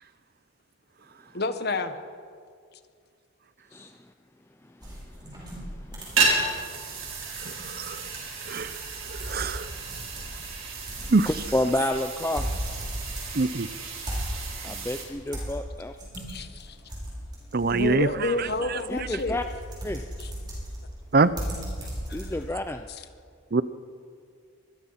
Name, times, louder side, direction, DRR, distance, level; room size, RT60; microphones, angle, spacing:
voice 1, 1.3-2.0 16.3-16.8 17.6-19.4 20.2-20.3 22.1-22.3 22.9-23.0, left 2 dB, 50° left, 9 dB, 1.4 m, -30 dB
sound 1, 4.8-22.7, equal, 20° right, 6.3 m, -38 dB
sound 2, 6.0-15.0, right 3 dB, 75° right, 5.0 m, -32 dB
voice 2, 6.1-6.6 11.0-12.5 14.6-16.0 18.9-19.5 19.8-20.0 22.1-22.8, left 1 dB, 10° left, 7 dB, 0.5 m, -30 dB
voice 3, 7.5-8.0 8.5-8.8 9.1-9.7 11.1-11.3 13.3-13.7 17.5-18.8 21.1-21.3 23.5-23.6, right 3 dB, 45° right, 15 dB, 0.6 m, -24 dB
25.0 x 21.0 x 5.8 m, 2.2 s
head